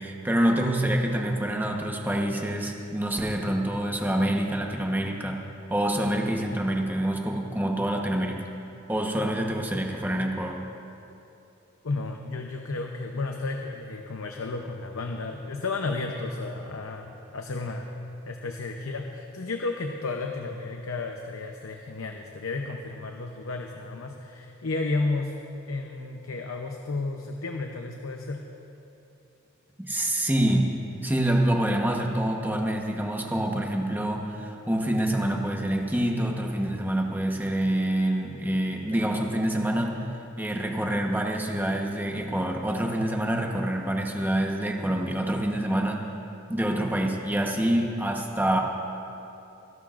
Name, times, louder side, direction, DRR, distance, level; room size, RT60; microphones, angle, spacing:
voice 1, 0.0-5.4 5.7-8.4 8.9-10.6 29.8-30.7 31.0-40.0 40.4-46.0 46.5-48.6, right 1 dB, 10° right, 0 dB, 1.1 m, -26 dB
voice 2, 11.8-17.9 18.3-25.4 25.7-28.5, left 3 dB, 85° left, 3 dB, 0.7 m, -32 dB
25.5 x 12.0 x 2.5 m, 2.8 s
head